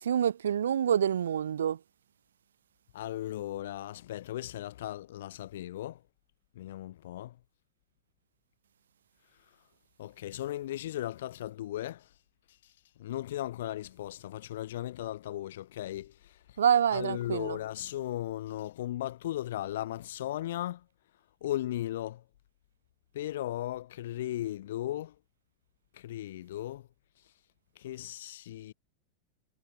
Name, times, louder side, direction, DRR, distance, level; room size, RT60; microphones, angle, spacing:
voice 1, 0.0-1.8 16.6-17.6, right 9 dB, 65° right, 0.6 m, -27 dB
voice 2, 2.9-6.0 6.5-7.4 10.0-12.1 12.5-16.6 16.9-20.9 21.4-22.2 23.1-25.2 25.9-26.9 27.8-28.7, left 13 dB, 55° left, 2.3 m, -37 dB
figure-of-eight pair, 90°, 0 cm